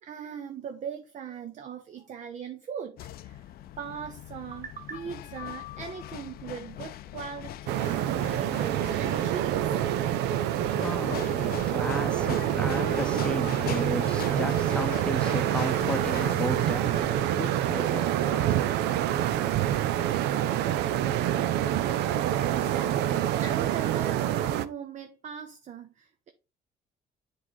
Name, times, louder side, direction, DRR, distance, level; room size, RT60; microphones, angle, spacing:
voice 1, 0.0-9.8 22.5-26.3, right 7 dB, 45° right, 0.7 m, -40 dB
sound 1, 3.0-17.3, left 13 dB, 65° left, 0.5 m, -42 dB
sound 2, 7.7-24.6, right 11 dB, 85° right, 0.6 m, -26 dB
voice 2, 10.4-19.6, left 1 dB, 5° left, 0.8 m, -36 dB
7.6 x 4.1 x 4.0 m
cardioid pair, 110°, 17 cm